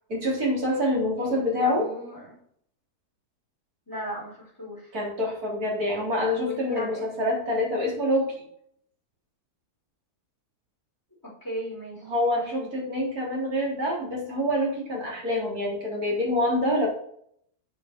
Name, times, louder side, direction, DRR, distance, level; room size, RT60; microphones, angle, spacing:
voice 1, 0.1-1.9 4.9-8.4 12.0-16.9, left 1 dB, 70° right, -2 dB, 4.2 m, -26 dB
voice 2, 1.2-2.4 3.9-4.9 6.3-7.1 11.2-12.0 12.3-12.7, equal, 10° left, -5 dB, 5.3 m, -37 dB
8.7 x 7.9 x 5.2 m, 0.67 s
omnidirectional pair, 1.6 m